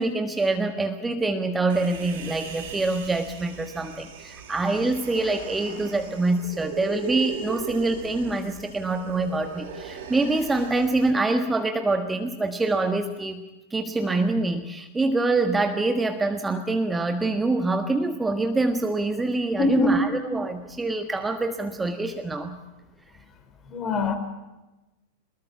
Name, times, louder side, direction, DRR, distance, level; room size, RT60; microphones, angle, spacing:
voice 1, 0.0-13.4 13.7-22.6, right 2 dB, 10° right, 7 dB, 1.5 m, -25 dB
Human voice, 1.7-11.1, right 6 dB, 55° right, 4.7 m, -38 dB
voice 2, 19.6-20.0 23.7-24.2, left 3 dB, 30° left, 6 dB, 4.5 m, -23 dB
24.0 x 21.5 x 7.3 m, 1.1 s
figure-of-eight pair, 90°, 0 cm